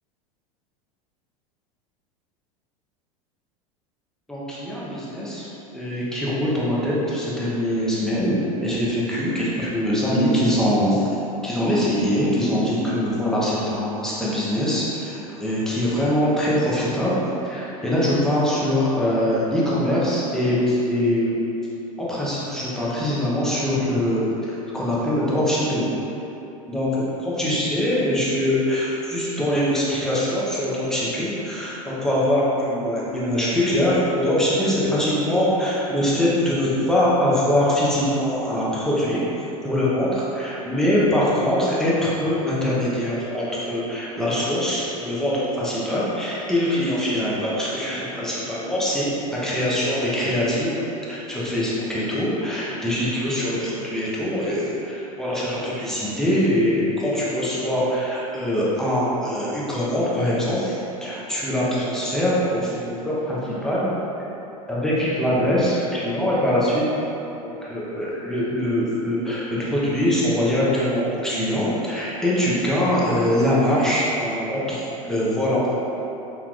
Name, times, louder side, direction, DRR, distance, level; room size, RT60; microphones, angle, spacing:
voice 1, 4.3-5.5 5.7-11.1 11.4-17.1 17.4-21.4 22.0-25.9 26.7-39.2 39.6-63.9 64.7-66.8 67.4-75.6, left 1 dB, 5° left, -8 dB, 0.8 m, -23 dB
3.9 x 2.8 x 2.4 m, 2.9 s
hypercardioid pair, 95°, 19 cm